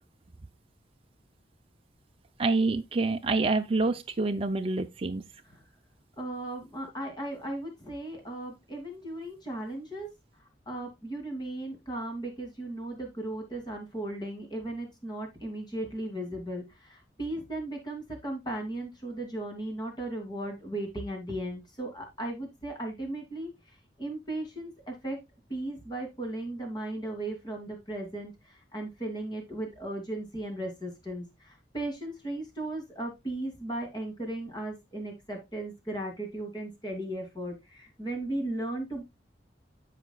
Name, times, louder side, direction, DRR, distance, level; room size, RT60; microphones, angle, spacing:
voice 1, 2.4-5.2, right 3 dB, 30° right, 0.5 m, -27 dB
voice 2, 6.2-10.1 10.7-16.6 16.9-23.5 24.0-25.2 25.5-28.3 28.7-31.2 31.7-39.0, right 1 dB, 25° left, 2.7 m, -36 dB
13.0 x 5.0 x 2.3 m
head